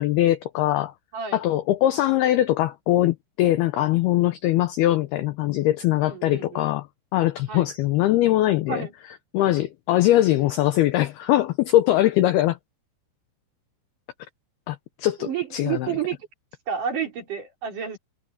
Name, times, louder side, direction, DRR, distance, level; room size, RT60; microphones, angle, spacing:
voice 1, 0.0-0.9 1.3-6.9 7.1-8.9 9.3-12.6 14.7-15.9, left 14 dB, 85° left, 2.2 m, -21 dB
voice 2, 6.0-6.7 7.5-7.7 8.7-8.9 15.2-16.3 16.7-18.0, right 8 dB, 45° right, 5.4 m, -30 dB
omnidirectional pair, 5.6 m